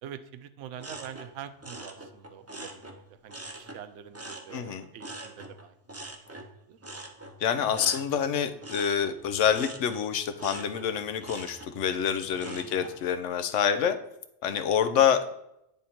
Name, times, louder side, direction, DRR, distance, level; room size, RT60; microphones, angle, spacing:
voice 1, 0.0-5.7 6.7-6.8 7.6-8.0 12.5-12.7, right 9 dB, 85° right, 10 dB, 0.9 m, -45 dB
sound 1, 0.8-3.8 4.1-13.0 13.4-13.9, right 2 dB, 20° right, 0.4 m, -44 dB
voice 2, 4.5-4.8 7.4-14.0 14.4-15.3, left 8 dB, 90° left, 10 dB, 1.0 m, -27 dB
9.0 x 3.6 x 4.2 m, 0.82 s
omnidirectional pair, 1.2 m